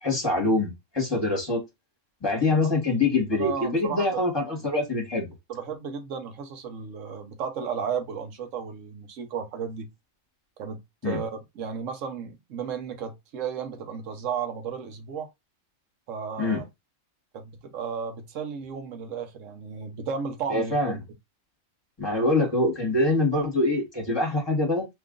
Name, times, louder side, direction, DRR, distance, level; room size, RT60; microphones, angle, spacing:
voice 1, 0.0-1.6 2.2-5.3 11.0-11.2 16.4-16.6 20.5-21.0 22.0-24.9, left 2 dB, 20° left, 1.2 m, -24 dB
voice 2, 3.3-4.0 4.5-4.7 5.5-9.9 10.6-15.3 16.1-16.6 17.3-21.0, right 6 dB, 70° right, 1.1 m, -34 dB
2.9 x 2.5 x 3.6 m
omnidirectional pair, 1.4 m